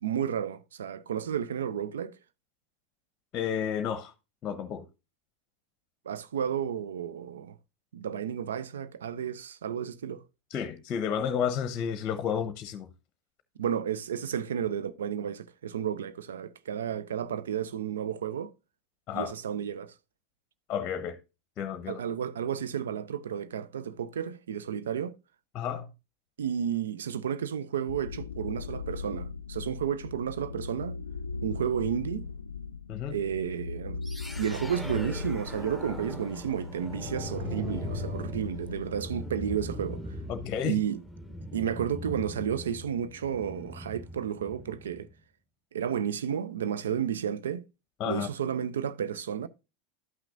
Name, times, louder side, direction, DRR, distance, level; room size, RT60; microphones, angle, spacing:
voice 1, 0.0-2.2 6.1-7.6 7.9-10.2 13.6-18.5 19.1-19.9 21.9-25.2 26.4-31.0 31.4-32.3 33.1-34.0 34.4-40.1 40.6-41.0 41.5-45.1 45.7-47.6 48.0-49.5, right 8 dB, 75° right, 0.4 m, -32 dB
voice 2, 3.3-4.1 4.4-4.8 10.5-12.9 19.1-19.3 20.7-21.2 21.6-22.0 25.5-25.9 32.9-33.2 40.3-40.8 48.0-48.3, left 8 dB, 40° left, 0.7 m, -31 dB
sound 1, 27.9-39.6, left 4 dB, 85° left, 0.3 m, -39 dB
sound 2, 34.0-45.1, equal, 5° right, 1.4 m, -40 dB
12.5 x 5.9 x 2.5 m
hypercardioid pair, 85°, 0 cm